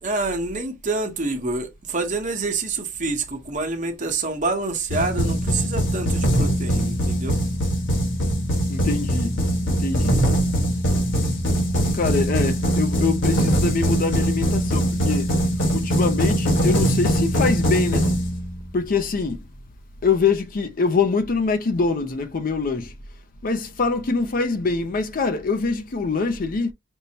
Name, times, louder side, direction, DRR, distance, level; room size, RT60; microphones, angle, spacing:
voice 1, 0.0-7.4, right 3 dB, 40° right, 0.9 m, -27 dB
sound 1, 4.9-18.8, equal, 75° left, 1.5 m, -22 dB
voice 2, 8.7-10.2 11.9-15.3 15.7-18.1 18.7-19.4 20.0-22.9 23.4-26.7, left 4 dB, 45° left, 0.5 m, -24 dB
5.3 x 2.1 x 2.7 m
head